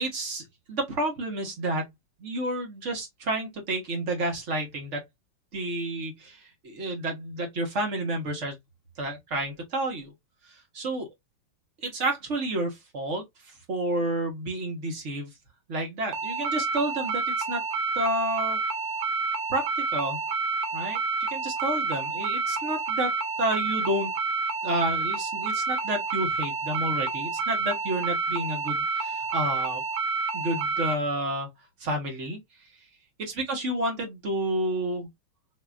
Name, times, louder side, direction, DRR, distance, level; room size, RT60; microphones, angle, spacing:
voice 1, 0.0-1.8 2.2-5.0 5.5-8.5 9.0-10.1 10.5-11.1 11.8-15.3 15.7-17.6 17.9-18.6 19.5-20.2 20.7-21.0 21.3-23.1 23.4-24.1 24.6-29.8 30.3-31.5 31.8-32.4 33.2-35.1, right 1 dB, 40° right, 1.6 m, -30 dB
sound 1, 16.1-30.9, right 3 dB, 80° right, 1.5 m, -29 dB
4.3 x 2.9 x 2.3 m
omnidirectional pair, 2.1 m